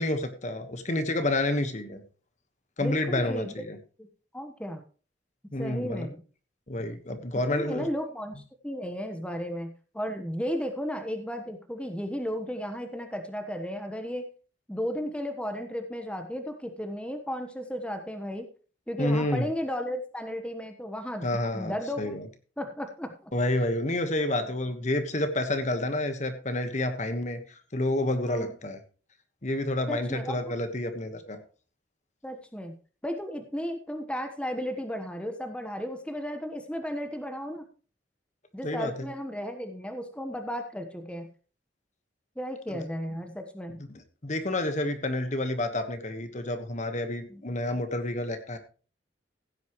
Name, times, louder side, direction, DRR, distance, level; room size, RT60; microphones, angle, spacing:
voice 1, 0.0-2.0 2.8-3.8 5.5-6.1 6.7-7.9 19.0-19.5 21.2-22.3 23.3-27.4 27.7-28.8 29.4-31.4 38.6-38.9 42.7-42.8 44.2-48.6, left 1 dB, 40° left, 8 dB, 1.3 m, -29 dB
voice 2, 2.8-3.6 4.0-4.1 4.3-4.8 5.6-6.2 7.5-14.3 14.7-18.5 18.9-21.3 21.5-22.2 22.6-23.3 28.2-28.5 29.9-30.5 32.2-32.7 33.0-37.7 38.5-41.3 42.4-43.8 47.3-47.4, equal, 5° left, 6 dB, 1.1 m, -34 dB
16.0 x 9.3 x 3.1 m, 0.38 s
head